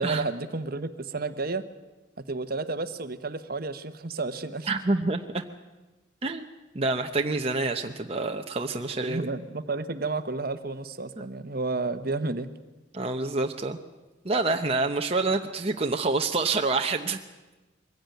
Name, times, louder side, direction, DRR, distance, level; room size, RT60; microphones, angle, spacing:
voice 1, 0.0-1.6 2.3-4.7 9.0-12.5, right 3 dB, 50° right, 10 dB, 1.1 m, -31 dB
voice 2, 4.7-5.4 6.2-6.5 6.7-9.3 12.9-13.8 14.2-17.2, right 3 dB, 30° right, 4 dB, 0.8 m, -27 dB
22.5 x 16.0 x 9.2 m, 1.1 s
head